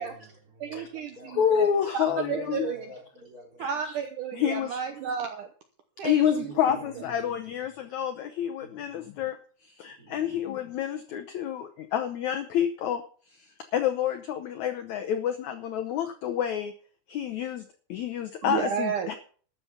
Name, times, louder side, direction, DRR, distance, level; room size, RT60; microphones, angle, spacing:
voice 1, 0.0-3.7 6.3-7.3 8.6-8.9 9.9-10.4, right 1 dB, 25° right, 3.4 m, -47 dB
voice 2, 0.6-1.7 1.9-2.8 3.6-5.5 6.0-6.5 7.0-7.1 18.4-19.1, right 7 dB, 70° right, 2.0 m, -32 dB
voice 3, 1.3-2.7 3.6-4.0 4.3-4.8 6.0-9.4 9.6-16.7 17.1-19.1, left 9 dB, 85° left, 1.6 m, -29 dB
13.0 x 7.1 x 6.8 m
omnidirectional pair, 4.6 m